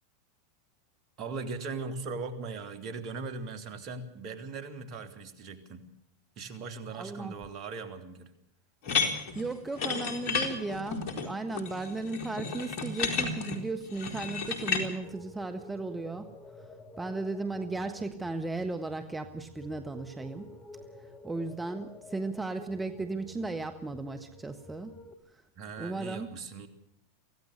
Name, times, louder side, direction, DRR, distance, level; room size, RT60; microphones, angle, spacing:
voice 1, 1.2-5.8 6.4-8.3 25.5-26.7, right 4 dB, 45° right, 8 dB, 3.4 m, -39 dB
voice 2, 7.0-7.3 9.3-16.3 16.6-16.7 17.0-20.5 21.2-24.9 25.8-26.3, right 3 dB, 10° right, 7 dB, 1.5 m, -35 dB
sound 1, 8.8-14.8, left 5 dB, 55° left, 4.0 m, -32 dB
sound 2, 15.0-25.1, left 2 dB, 25° left, 3.7 m, -50 dB
24.5 x 16.5 x 6.7 m, 0.77 s
hypercardioid pair, 95°, 0 cm